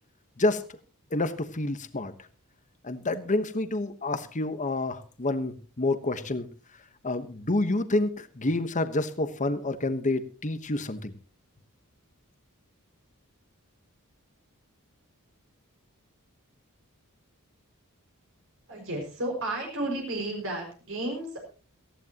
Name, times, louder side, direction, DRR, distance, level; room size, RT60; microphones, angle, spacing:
voice 1, 1.1-2.1 2.8-6.5 7.0-11.1, left 2 dB, 35° left, 10 dB, 1.1 m, -28 dB
voice 2, 18.7-21.4, right 1 dB, 60° right, 1 dB, 5.8 m, -32 dB
18.5 x 14.5 x 2.9 m, 0.35 s
head